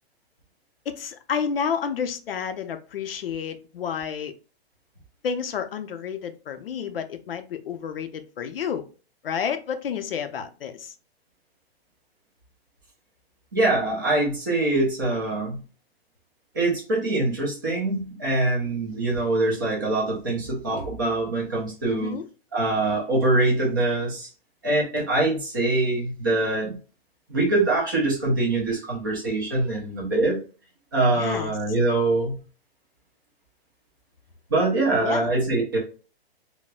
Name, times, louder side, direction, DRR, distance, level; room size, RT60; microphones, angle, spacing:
voice 1, 0.9-4.3 5.2-8.8 9.2-10.9 21.9-22.2 31.1-31.5 35.0-35.3, left 7 dB, 65° left, 9 dB, 0.5 m, -30 dB
voice 2, 13.5-15.6 16.5-22.2 22.5-24.3 24.6-26.8 27.3-30.4 30.9-32.4 34.5-35.8, right 2 dB, 20° right, -3 dB, 0.6 m, -24 dB
4.0 x 2.1 x 2.2 m, 0.36 s
hypercardioid pair, 180°, 31 cm